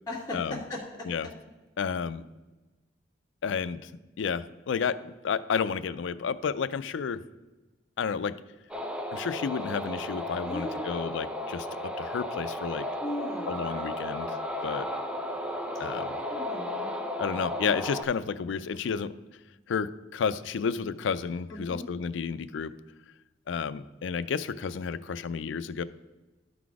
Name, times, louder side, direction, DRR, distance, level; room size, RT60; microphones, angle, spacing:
voice 1, 0.1-0.8 10.4-10.7 13.0-13.6 16.3-16.9 21.5-21.8, left 1 dB, 15° left, -12 dB, 1.9 m, -36 dB
voice 2, 1.8-2.2 3.4-3.9 4.2-5.0 5.2-7.2 8.0-8.3 9.1-11.7 12.0-12.9 13.5-14.4 14.6-14.9 15.8-16.2 17.2-19.1 19.7-22.7 23.5-25.8, left 6 dB, 85° left, 15 dB, 0.4 m, -31 dB
sound 1, 8.7-18.0, left 1 dB, 5° right, 0.5 m, -34 dB
12.0 x 4.0 x 4.7 m, 1.1 s
head